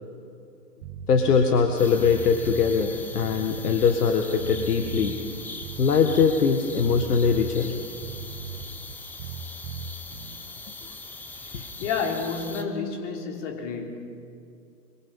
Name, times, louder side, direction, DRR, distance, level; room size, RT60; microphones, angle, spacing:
sound 1, 0.8-10.4, right 6 dB, 30° right, 1.4 m, -38 dB
voice 1, 1.1-5.2 5.8-7.7 11.5-11.6, left 6 dB, 65° left, 5 dB, 1.8 m, -22 dB
sound 2, 1.8-12.6, left 3 dB, 5° left, 0.7 m, -41 dB
voice 2, 11.4-14.1, left 5 dB, 45° left, 2 dB, 3.7 m, -31 dB
26.5 x 23.0 x 5.5 m, 2.4 s
figure-of-eight pair, 120°, 49 cm